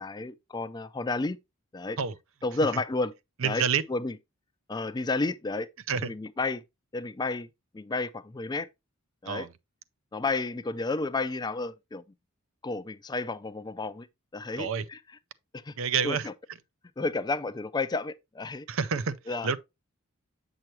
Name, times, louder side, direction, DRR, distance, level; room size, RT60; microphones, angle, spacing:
voice 1, 0.0-1.4 1.7-2.0 2.4-3.1 3.4-3.6 3.9-4.2 4.7-5.7 6.0-6.6 6.9-7.5 7.7-8.7 9.2-9.5 10.1-12.0 12.6-14.1 14.3-15.0 15.5-15.8 16.0-16.3 17.0-18.7 19.3-19.5, left 3 dB, 20° left, 0.4 m, -31 dB
voice 2, 3.4-3.8 5.9-6.1 9.3-9.5 14.6-14.8 15.8-16.3 18.7-19.6, right 6 dB, 60° right, 0.5 m, -28 dB
7.8 x 6.0 x 3.0 m
head